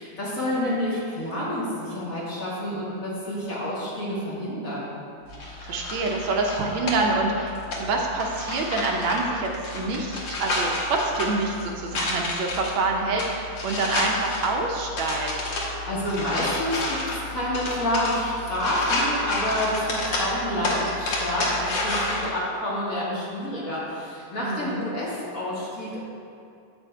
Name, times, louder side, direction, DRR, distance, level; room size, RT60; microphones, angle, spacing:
voice 1, 0.0-4.9 15.7-26.0, left 1 dB, 40° left, -7 dB, 2.0 m, -29 dB
sound 1, 5.3-22.3, left 2 dB, 65° left, 1.9 m, -30 dB
voice 2, 5.4-15.7 24.4-24.8, right 3 dB, 70° right, 0 dB, 1.5 m, -27 dB
8.0 x 6.2 x 4.4 m, 2.5 s
omnidirectional pair, 2.3 m